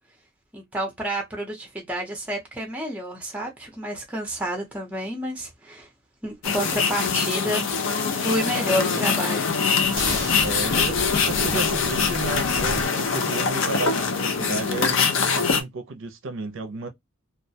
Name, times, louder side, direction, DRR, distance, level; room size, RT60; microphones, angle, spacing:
voice 1, 0.5-5.9 6.2-7.7 8.1-9.4, equal, 5° right, 0.5 m, -29 dB
sound 1, 6.4-15.6, left 5 dB, 60° left, 0.4 m, -23 dB
sound 2, 9.8-12.9, equal, 25° left, 0.9 m, -36 dB
sound 3, 10.0-12.7, left 1 dB, 45° left, 1.1 m, -37 dB
voice 2, 10.4-11.0 11.2-16.9, right 3 dB, 65° right, 0.4 m, -32 dB
2.3 x 2.1 x 2.6 m
head